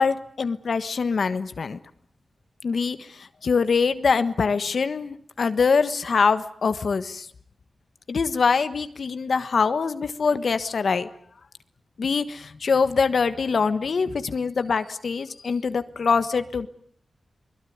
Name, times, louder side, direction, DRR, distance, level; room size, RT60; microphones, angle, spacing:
voice 1, 0.0-1.8 2.6-7.3 8.1-11.1 12.0-16.7, left 5 dB, 70° left, 12 dB, 1.4 m, -24 dB
23.5 x 21.5 x 9.5 m, 0.62 s
wide cardioid pair, 90°, 0 cm